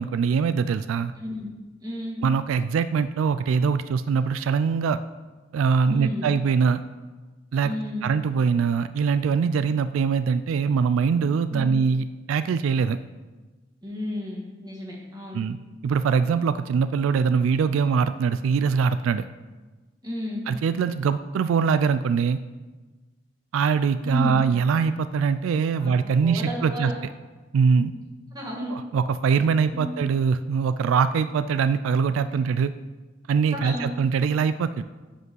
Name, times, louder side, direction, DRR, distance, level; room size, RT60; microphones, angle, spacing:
voice 1, 0.0-1.1 2.2-5.0 5.5-6.8 7.5-7.7 8.0-13.0 15.3-15.6 15.8-19.2 20.5-22.4 23.5-26.9 27.5-27.9 28.7-32.7 33.3-34.8, right 6 dB, 85° right, 13 dB, 0.3 m, -23 dB
voice 2, 1.2-1.5 1.8-2.2 5.9-6.3 7.6-8.1 11.5-11.8 13.8-15.4 20.0-20.5 24.0-24.4 25.8-25.9 26.2-26.9 28.3-28.7 29.7-29.9 32.3-32.4 33.5-33.9, left 1 dB, 20° right, -3 dB, 1.7 m, -32 dB
7.6 x 5.4 x 6.2 m, 1.3 s
head